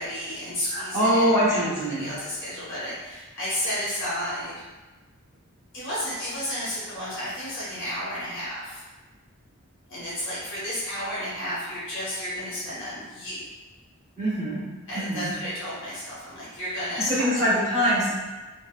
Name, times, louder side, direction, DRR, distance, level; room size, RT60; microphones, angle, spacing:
voice 1, 0.0-4.5 5.7-8.8 9.9-13.5 14.9-17.5, equal, 60° left, -9 dB, 0.8 m, -32 dB
voice 2, 0.7-2.1 14.2-14.6 14.9-15.3 17.0-18.1, equal, 15° left, -12 dB, 1.4 m, -23 dB
3.2 x 2.2 x 2.4 m, 1.2 s
head